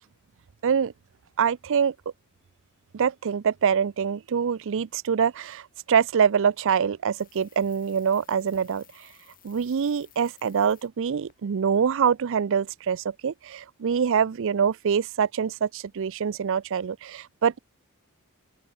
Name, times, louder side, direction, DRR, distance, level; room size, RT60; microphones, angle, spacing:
voice 1, 1.4-1.9 2.9-8.8 9.4-17.6, right 7 dB, 60° right, 0.4 m, -25 dB
sound 1, 7.1-10.9 11.3-11.4, left 12 dB, 40° left, 5.9 m, -57 dB
open air
head